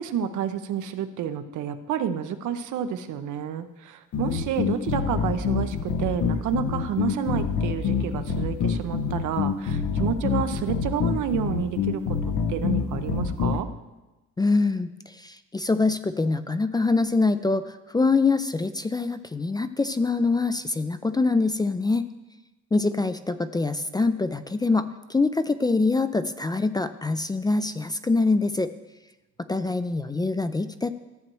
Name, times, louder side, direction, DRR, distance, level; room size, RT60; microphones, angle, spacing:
voice 1, 0.0-12.2 12.5-13.7, right 8 dB, 75° right, 9 dB, 0.7 m, -29 dB
sound 1, 4.1-13.6, left 6 dB, 75° left, 0.8 m, -26 dB
voice 2, 14.4-14.9 15.2-17.6 17.9-22.1 22.7-28.7 29.5-30.9, left 3 dB, 15° left, 11 dB, 0.3 m, -24 dB
14.0 x 7.5 x 3.1 m, 1.1 s
cardioid pair, 90°, 30 cm